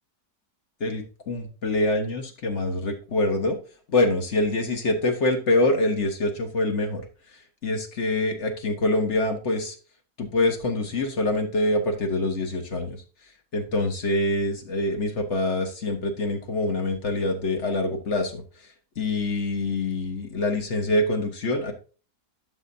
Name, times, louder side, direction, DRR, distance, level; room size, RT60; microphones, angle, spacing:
voice 1, 0.8-3.6 3.9-7.0 7.6-9.7 10.2-13.0 13.5-18.4 19.0-21.7, left 2 dB, 45° left, 5 dB, 1.4 m, -25 dB
11.5 x 5.7 x 2.7 m, 0.36 s
omnidirectional pair, 1.8 m